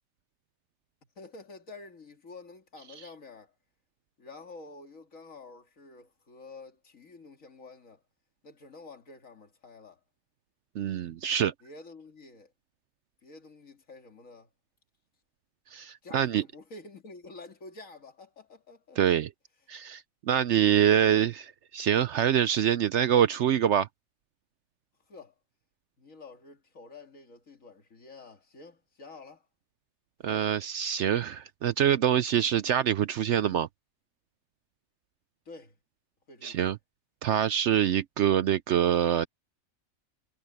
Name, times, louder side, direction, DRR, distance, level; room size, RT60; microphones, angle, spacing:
voice 1, 1.2-3.5 4.2-8.0 8.4-10.0 11.6-12.5 13.2-14.5 16.0-19.0 21.0-21.3 25.1-25.3 26.0-29.5 30.3-30.5 35.5-35.8 36.3-36.7, left 3 dB, 65° left, 2.6 m, -49 dB
voice 2, 10.8-11.5 15.7-16.4 19.0-19.3 19.7-23.9 30.2-33.7 36.4-36.8 37.2-39.3, right 9 dB, 65° right, 0.8 m, -25 dB
omnidirectional pair, 1.5 m